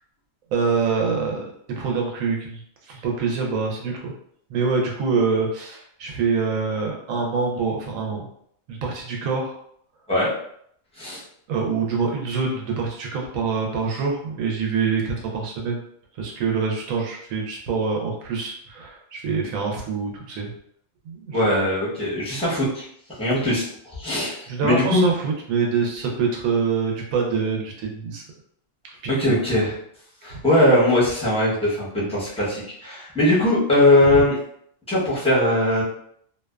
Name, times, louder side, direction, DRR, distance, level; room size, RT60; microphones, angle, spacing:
voice 1, 0.5-1.4 1.8-2.6 2.9-4.1 4.5-8.2 8.7-9.5 11.5-15.8 16.2-20.5 21.1-21.5 24.5-28.2 29.0-29.4 34.1-34.2, right 5 dB, 85° right, 0 dB, 1.0 m, -25 dB
voice 2, 21.3-22.8 23.2-23.6 24.0-25.1 29.1-29.7 30.2-34.4 34.9-35.8, left 1 dB, 5° left, -7 dB, 0.6 m, -20 dB
2.6 x 2.2 x 2.2 m, 0.68 s
omnidirectional pair, 1.4 m